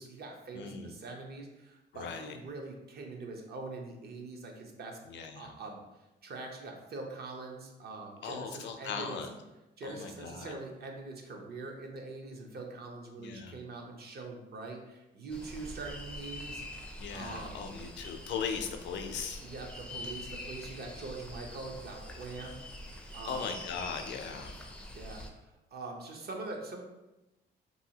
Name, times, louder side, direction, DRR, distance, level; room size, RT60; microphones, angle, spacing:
voice 1, 0.0-5.0 5.4-9.2 9.8-16.6 17.1-17.7 19.4-22.5 23.1-23.5 24.9-26.8, right 3 dB, 55° right, 1 dB, 0.6 m, -43 dB
voice 2, 0.5-1.0 1.9-2.4 5.1-5.5 8.2-9.3 9.8-10.5 13.2-13.6 17.0-19.4 23.2-24.6, left 6 dB, 65° left, 6 dB, 0.4 m, -39 dB
sound 1, 15.3-25.3, left 1 dB, 5° left, 0.4 m, -45 dB
2.7 x 2.7 x 2.7 m, 1.0 s
cardioid pair, 90°, 20 cm